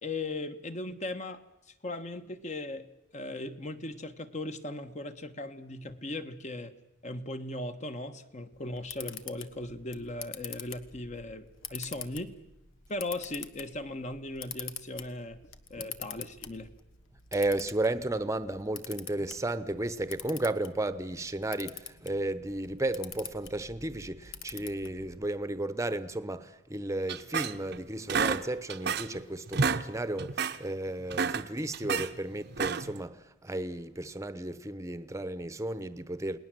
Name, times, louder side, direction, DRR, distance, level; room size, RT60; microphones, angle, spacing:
voice 1, 0.0-1.4 1.8-2.9 3.1-6.7 7.0-12.3 12.9-15.4 15.7-16.7, left 2 dB, 40° left, 1.4 m, -38 dB
Camera, 8.5-25.2, left 8 dB, 85° left, 1.4 m, -46 dB
voice 2, 17.3-36.4, right 1 dB, 15° right, 1.0 m, -33 dB
sound 1, 27.1-27.8 28.1-29.2 29.5-29.9 30.2-30.6 31.0-32.1 32.5-33.0, right 5 dB, 55° right, 0.9 m, -30 dB
29.0 x 19.5 x 7.7 m
head